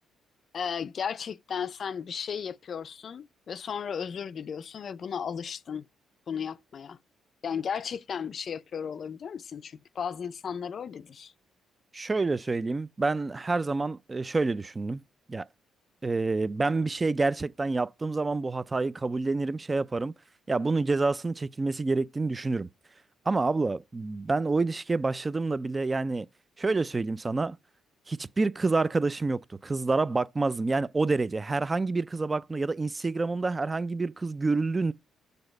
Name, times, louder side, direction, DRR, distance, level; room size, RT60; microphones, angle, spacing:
voice 1, 0.5-5.9 6.3-7.0 7.4-11.3, left 7 dB, 50° left, 0.4 m, -35 dB
voice 2, 11.9-15.0 15.3-15.5 16.0-20.1 20.5-22.7 23.3-26.3 26.6-27.6 28.1-34.9, right 3 dB, 25° right, 0.4 m, -28 dB
6.9 x 3.8 x 5.3 m
cardioid pair, 90°, 0 cm